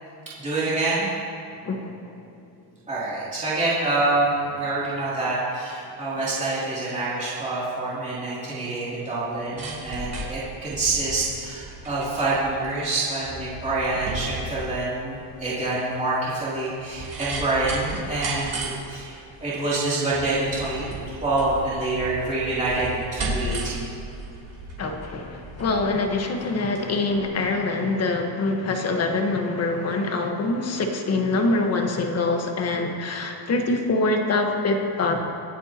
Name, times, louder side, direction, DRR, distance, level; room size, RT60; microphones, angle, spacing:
voice 1, 0.4-1.1 2.9-24.0, right 2 dB, 15° right, -9 dB, 3.0 m, -26 dB
voice 2, 1.6-2.1 24.8-35.2, left 3 dB, 30° left, 3 dB, 1.4 m, -24 dB
sound 1, 9.2-26.9 27.2-27.3, right 2 dB, 35° right, 3.2 m, -35 dB
25.0 x 9.1 x 3.0 m, 2.5 s
cardioid pair, 155°, 47 cm